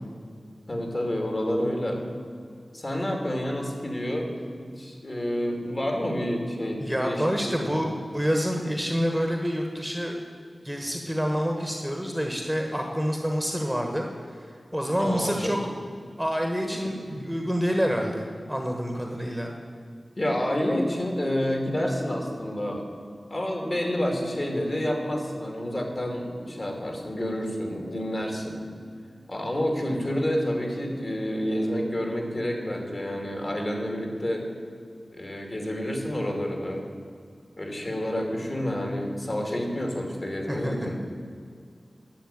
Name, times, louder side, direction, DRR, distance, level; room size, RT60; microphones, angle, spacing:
voice 1, 0.7-2.0 2.7-4.3 4.6-7.3 7.6-7.8 15.0-15.5 17.1-17.2 20.2-22.8 23.3-28.6 29.3-34.5 35.1-36.8 37.6-41.0, equal, 40° left, 2 dB, 2.6 m, -29 dB
voice 2, 6.8-10.2 10.6-15.6 16.2-19.5 40.5-40.9, equal, ahead, 2 dB, 1.3 m, -28 dB
11.5 x 6.7 x 9.0 m, 2.2 s
wide cardioid pair, 85°, 0 cm